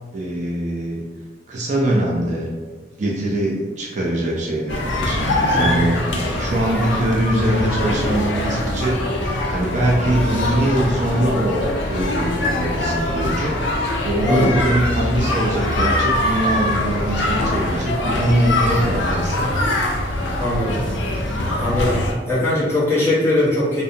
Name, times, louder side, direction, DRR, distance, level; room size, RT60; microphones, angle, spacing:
voice 1, 0.1-1.0 1.5-9.0 9.5-13.7 14.0-19.4, right 1 dB, 40° right, -3 dB, 0.4 m, -22 dB
sound 1, 4.7-22.1, left 1 dB, 75° left, 0.4 m, -22 dB
voice 2, 5.5-5.8 14.2-14.5 20.4-20.8 21.6-23.8, left 1 dB, 15° left, -10 dB, 0.9 m, -21 dB
2.6 x 2.0 x 2.6 m, 1.4 s
head